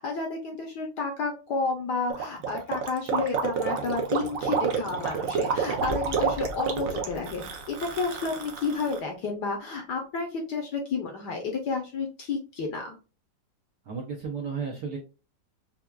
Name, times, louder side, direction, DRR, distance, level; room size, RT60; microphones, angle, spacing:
voice 1, 0.0-13.0, left 4 dB, 60° left, 2 dB, 1.2 m, -31 dB
Gurgling, 2.1-9.0, right 6 dB, 85° right, 0.7 m, -29 dB
sound 1, 5.8-8.7, left 3 dB, 80° left, 1.5 m, -42 dB
voice 2, 13.8-15.0, right 5 dB, 65° right, 0 dB, 1.0 m, -33 dB
5.7 x 2.4 x 2.3 m, 0.33 s
omnidirectional pair, 2.4 m